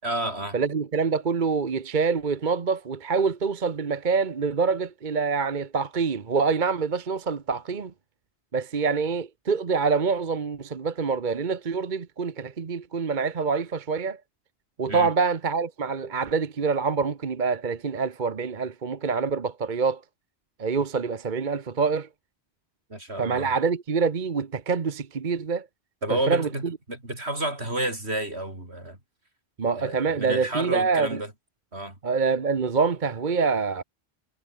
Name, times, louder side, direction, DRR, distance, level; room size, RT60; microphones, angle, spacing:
voice 1, 0.0-0.6 14.9-15.1 22.9-23.5 26.0-29.0 29.7-31.3 31.7-32.0, right 1 dB, 80° right, 7.2 m, -30 dB
voice 2, 0.5-7.9 8.5-14.2 14.8-20.0 20.6-22.1 23.2-25.7 26.1-26.5 29.6-31.2 32.0-33.8, right 5 dB, 50° right, 1.2 m, -26 dB
omnidirectional pair, 1.1 m